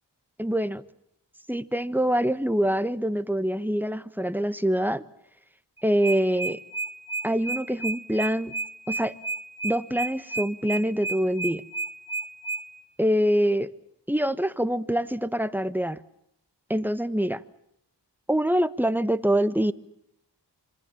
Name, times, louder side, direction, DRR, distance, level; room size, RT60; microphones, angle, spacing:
voice 1, 0.4-0.8 1.5-5.0 5.8-6.6 7.2-8.5 8.9-9.1 9.6-11.6 13.0-13.7 14.1-16.0 16.7-17.4 18.3-19.7, equal, 5° right, 13 dB, 1.4 m, -25 dB
sound 1, 5.8-12.6, right 3 dB, 15° left, 4.6 m, -31 dB
26.5 x 25.0 x 7.1 m, 0.77 s
cardioid pair, 40°, 43 cm